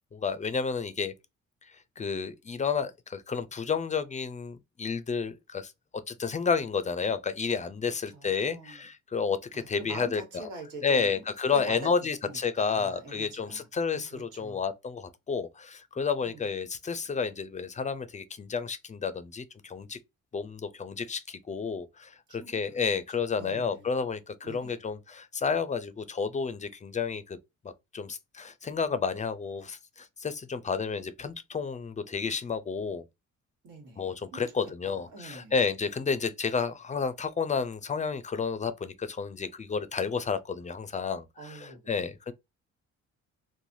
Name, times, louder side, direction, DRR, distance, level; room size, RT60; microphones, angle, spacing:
voice 1, 0.1-1.1 1.6-5.7 6.1-10.2 10.8-20.0 20.3-27.4 27.6-33.0 34.0-41.3 41.6-42.3, left 5 dB, 25° left, 0.4 m, -31 dB
voice 2, 8.1-8.9 9.5-11.2 11.5-14.6 16.2-16.5 22.3-22.8 23.1-23.9 24.4-24.8 33.6-35.5 41.4-41.8, right 2 dB, 85° right, 1.4 m, -45 dB
3.2 x 2.1 x 2.6 m
cardioid pair, 90°, 30 cm